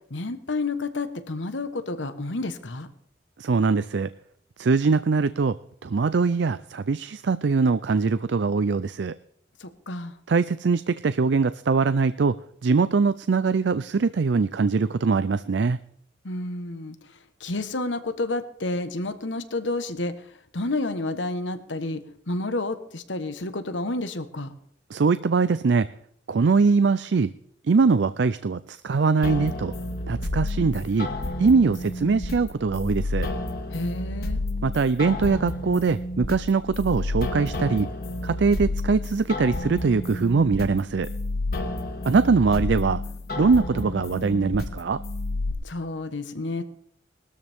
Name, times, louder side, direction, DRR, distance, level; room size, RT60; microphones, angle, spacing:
voice 1, 0.1-2.9 9.6-10.1 16.2-17.0 17.4-20.1 20.5-24.5 33.7-34.4 45.6-46.6, left 2 dB, 85° left, 10 dB, 1.3 m, -30 dB
voice 2, 3.4-4.1 4.6-5.6 5.8-9.1 10.3-12.4 12.6-15.8 24.9-25.9 26.3-27.3 27.7-29.7 30.1-31.1 31.4-33.3 34.6-37.9 38.2-41.1 42.0-43.0 43.4-45.0, right 4 dB, 75° right, 14 dB, 0.4 m, -22 dB
sound 1, 29.2-45.5, left 2 dB, 55° left, 1.6 m, -30 dB
20.0 x 13.0 x 3.6 m, 0.67 s
head